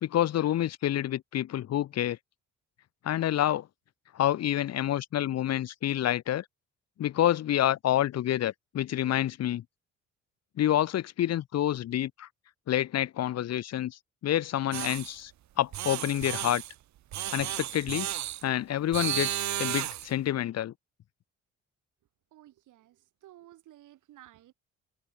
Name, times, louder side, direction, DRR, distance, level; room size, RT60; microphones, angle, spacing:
voice 1, 0.0-2.2 3.0-3.7 4.1-6.4 7.0-9.6 10.6-12.3 12.7-15.3 15.6-16.6 17.3-18.1 18.4-20.7, left 12 dB, 55° left, 0.7 m, -28 dB
sound 1, 14.7-15.1 15.7-16.7 17.1-18.4 18.9-20.1, right 13 dB, 65° right, 0.9 m, -33 dB
voice 2, 22.3-24.5, right 14 dB, 80° right, 4.8 m, -54 dB
cardioid pair, 90°, 30 cm